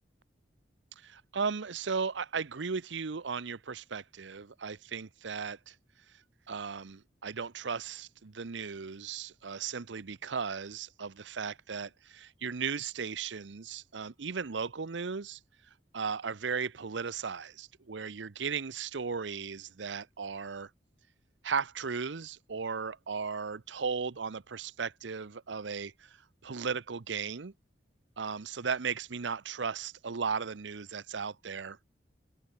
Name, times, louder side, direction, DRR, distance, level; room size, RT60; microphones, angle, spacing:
voice 1, 1.0-5.7 6.5-15.4 15.9-20.7 21.4-26.2 26.4-27.5 28.2-31.8, right 5 dB, 85° right, 0.7 m, -36 dB
head